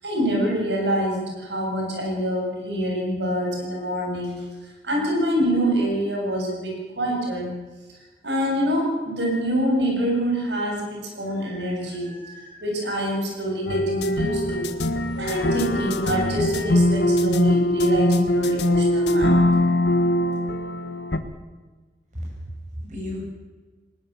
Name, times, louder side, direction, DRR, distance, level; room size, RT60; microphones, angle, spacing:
voice 1, 0.0-4.5 4.8-7.6 8.2-14.7 15.2-19.4, equal, 85° right, 0 dB, 7.5 m, -26 dB
sound 1, 13.7-21.2, left 1 dB, 90° left, 1.5 m, -21 dB
voice 2, 22.1-23.2, equal, 45° right, -1 dB, 7.8 m, -34 dB
20.0 x 19.5 x 7.5 m, 1.3 s
head